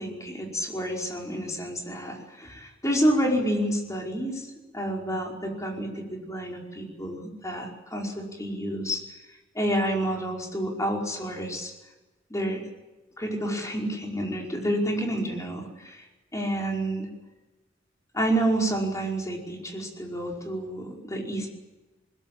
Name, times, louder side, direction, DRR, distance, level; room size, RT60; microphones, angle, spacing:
voice 1, 0.0-4.5 4.7-9.0 9.5-11.7 12.3-12.6 13.2-16.0 16.3-17.1 18.1-21.5, right 1 dB, 15° left, 0 dB, 5.2 m, -29 dB
21.5 x 21.0 x 8.8 m, 1.1 s
head